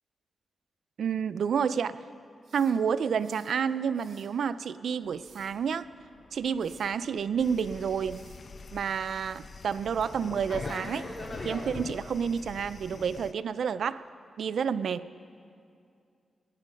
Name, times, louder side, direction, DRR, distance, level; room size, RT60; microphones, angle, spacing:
voice 1, 1.0-2.0 2.5-5.9 6.3-8.3 8.7-11.1 11.4-14.0 14.4-15.1, right 7 dB, 80° right, 15 dB, 0.4 m, -29 dB
sound 1, 2.4-3.6 3.9-4.3 5.0-5.6 6.6-7.0 8.1-8.5, right 4 dB, 65° right, 2.4 m, -58 dB
Fixed-wing aircraft airplane, 5.2-11.7, left 1 dB, 30° left, 2.9 m, -45 dB
sound 2, 7.4-13.3, left 4 dB, 50° left, 0.3 m, -43 dB
20.5 x 9.8 x 5.2 m, 2.4 s
cardioid pair, 85°, 0 cm